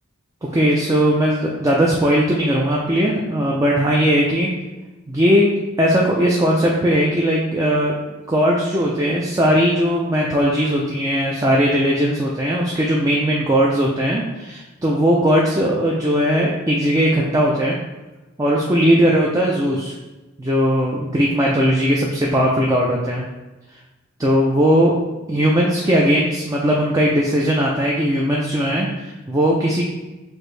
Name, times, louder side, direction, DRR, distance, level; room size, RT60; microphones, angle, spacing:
voice 1, 0.4-4.5 5.1-5.4 5.8-7.9 8.3-17.8 18.4-19.9 20.4-23.2 24.2-24.9 25.3-29.8, equal, 15° right, -3 dB, 0.4 m, -18 dB
6.0 x 2.6 x 3.2 m, 1.1 s
head